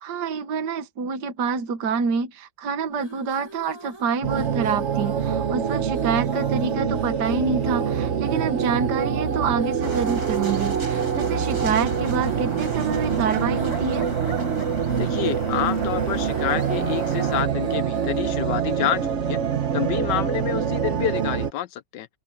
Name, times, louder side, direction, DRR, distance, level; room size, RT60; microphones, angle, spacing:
voice 1, 0.0-14.1, right 5 dB, 60° right, 1.8 m, -27 dB
sound 1, 2.9-19.3, equal, 15° left, 4.7 m, -45 dB
sound 2, 4.2-21.5, right 7 dB, 45° right, 1.1 m, -25 dB
sound 3, 9.8-17.4, right 3 dB, 80° right, 6.5 m, -35 dB
voice 2, 15.0-19.4 19.7-22.1, left 11 dB, 75° left, 1.2 m, -28 dB
open air
omnidirectional pair, 2.1 m